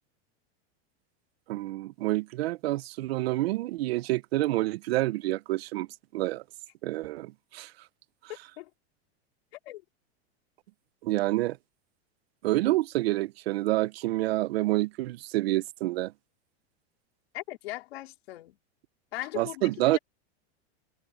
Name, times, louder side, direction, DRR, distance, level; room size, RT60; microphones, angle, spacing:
voice 1, 1.5-5.9 6.1-6.4 6.8-7.7 11.0-11.6 12.4-16.1 19.3-20.0, right 17 dB, 65° right, 0.7 m, -28 dB
voice 2, 17.3-18.6 19.1-20.0, left 17 dB, 65° left, 3.9 m, -39 dB
supercardioid pair, 175°, 33 cm